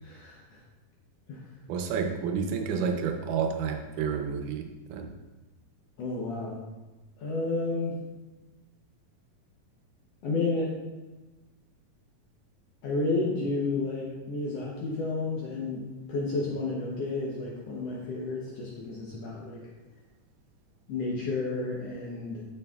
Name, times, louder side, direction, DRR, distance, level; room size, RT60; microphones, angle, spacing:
voice 1, 0.0-0.6 1.3-1.4 6.0-6.6 7.2-8.0 10.2-10.7 12.8-15.8 16.1-19.6 20.9-22.4, left 3 dB, 70° left, -3 dB, 1.6 m, -31 dB
voice 2, 1.7-5.1, right 6 dB, 80° right, 4 dB, 2.2 m, -30 dB
8.7 x 6.8 x 2.3 m, 1.1 s
omnidirectional pair, 3.7 m